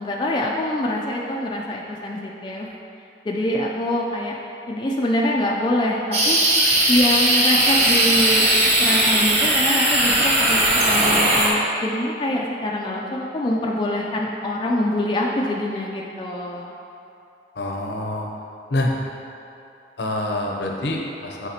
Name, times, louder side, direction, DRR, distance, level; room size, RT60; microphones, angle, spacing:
voice 1, 0.0-2.7 3.3-4.4 4.7-6.4 6.9-8.5 8.8-16.7, left 1 dB, 25° left, -2 dB, 0.3 m, -24 dB
sound 1, 6.1-11.5, right 1 dB, 35° right, 1.0 m, -18 dB
voice 2, 17.6-18.3 18.7-18.9 20.0-21.5, left 1 dB, 70° left, 0 dB, 0.7 m, -26 dB
8.4 x 4.0 x 2.8 m, 2.8 s
head